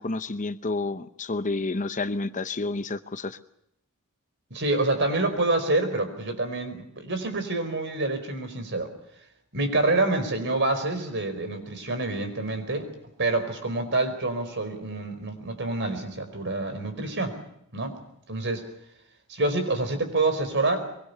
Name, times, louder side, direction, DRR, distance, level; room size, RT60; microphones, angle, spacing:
voice 1, 0.0-3.4, left 3 dB, 35° left, 12 dB, 0.8 m, -30 dB
voice 2, 4.5-8.9 9.5-12.9 13.2-17.4 17.7-18.0 18.3-18.7 19.3-20.9, right 2 dB, 55° right, 9 dB, 4.7 m, -27 dB
24.0 x 23.5 x 6.9 m, 0.76 s
head